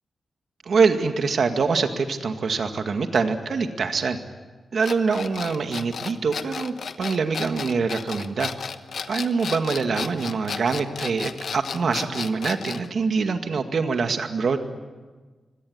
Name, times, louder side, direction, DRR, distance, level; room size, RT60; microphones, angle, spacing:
voice 1, 0.7-4.2 4.7-8.5 9.1-14.7, right 4 dB, 70° right, 6 dB, 2.0 m, -24 dB
sound 1, 4.8-12.9, left 6 dB, 70° left, 1.1 m, -33 dB
24.5 x 18.0 x 9.6 m, 1.3 s
cardioid pair, 80°, 0 cm